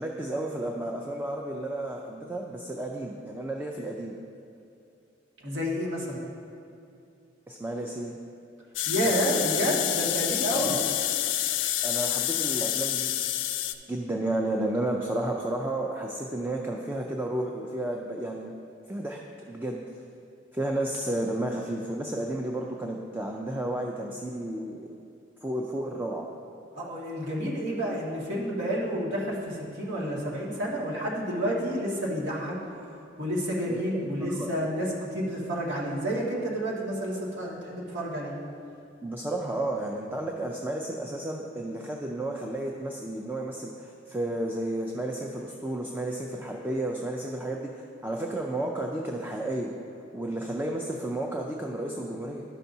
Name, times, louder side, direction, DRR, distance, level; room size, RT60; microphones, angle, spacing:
voice 1, 0.0-4.1 7.5-8.1 9.0-9.6 10.5-10.8 11.8-13.1 13.9-18.5 18.9-19.2 19.5-19.8 20.5-25.0 25.4-26.3 33.7-34.5 39.0-49.7 50.1-52.4, right 1 dB, 10° right, 1 dB, 0.4 m, -32 dB
voice 2, 5.4-6.2 8.9-10.8 26.7-32.6 33.2-38.3, equal, 65° right, -5 dB, 1.8 m, -30 dB
sound 1, 8.8-13.7, left 12 dB, 75° left, 0.4 m, -28 dB
12.0 x 5.7 x 2.7 m, 2.7 s
head